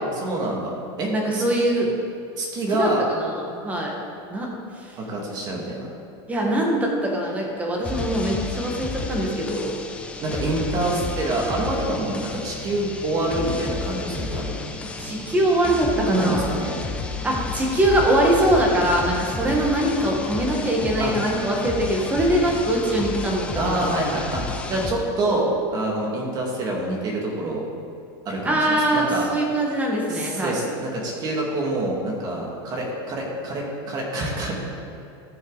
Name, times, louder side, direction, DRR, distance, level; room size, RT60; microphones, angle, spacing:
voice 1, 0.1-1.7 2.4-3.1 5.0-5.9 10.2-14.6 16.0-16.8 21.0-21.2 23.6-27.6 28.2-29.3 30.1-34.5, right 2 dB, 30° right, -2 dB, 2.2 m, -26 dB
voice 2, 1.1-1.9 2.8-4.0 4.3-4.5 4.8-4.9 6.3-9.8 15.0-16.5 17.2-23.9 28.4-30.6, right 1 dB, 10° right, -1 dB, 1.5 m, -22 dB
sound 1, 7.8-24.9, left 4 dB, 10° left, 0.6 m, -32 dB
14.0 x 6.6 x 4.0 m, 2.6 s
supercardioid pair, 155°, 14 cm